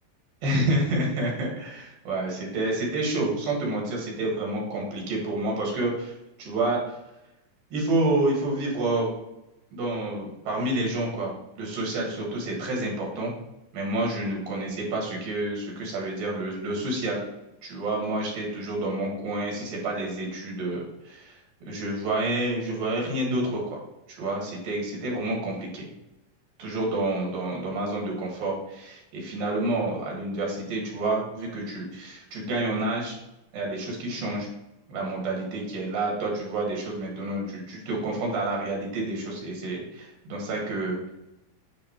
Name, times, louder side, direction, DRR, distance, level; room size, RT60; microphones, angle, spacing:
voice 1, 0.4-6.1 6.4-7.0 7.7-9.1 9.7-13.3 13.7-17.2 17.6-23.8 24.1-25.8 26.6-33.2 33.5-34.5 34.9-41.1, right 2 dB, 75° right, -2 dB, 3.3 m, -29 dB
9.3 x 3.7 x 2.9 m, 0.92 s
omnidirectional pair, 4.0 m